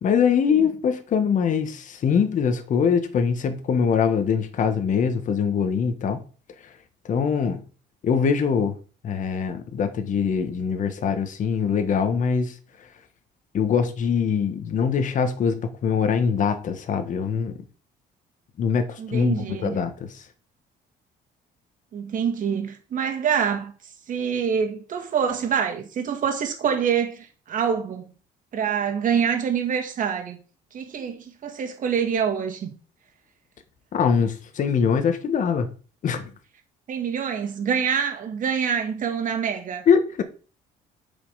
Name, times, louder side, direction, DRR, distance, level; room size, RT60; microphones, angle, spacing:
voice 1, 0.0-6.2 7.0-7.6 8.0-8.7 9.0-12.5 13.5-17.6 18.6-19.9 33.9-35.7 36.0-36.3 39.9-40.2, left 6 dB, 50° left, 1.4 m, -23 dB
voice 2, 19.0-19.8 21.9-28.1 28.5-30.4 30.7-32.7 36.9-39.8, right 7 dB, 50° right, 2.3 m, -26 dB
8.2 x 5.5 x 5.6 m
cardioid pair, 110°, 17 cm